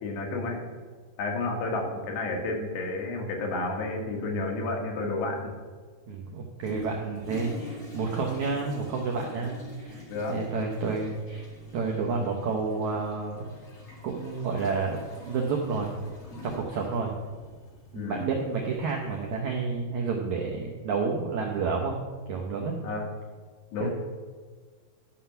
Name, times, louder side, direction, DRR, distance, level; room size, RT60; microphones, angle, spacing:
voice 1, 0.0-0.6 1.2-5.5 10.1-10.4 17.9-18.2 22.8-23.1 23.7-23.9, left 2 dB, 85° left, 1 dB, 3.6 m, -31 dB
voice 2, 6.1-11.4 11.7-13.5 14.0-15.0 15.3-15.9 16.4-17.1 17.9-22.0 22.3-22.8 23.8-23.9, right 4 dB, 80° right, 0 dB, 1.7 m, -30 dB
Toilet flush, 6.6-19.4, left 2 dB, 60° left, 0.6 m, -46 dB
11.5 x 5.9 x 5.6 m, 1.5 s
omnidirectional pair, 4.7 m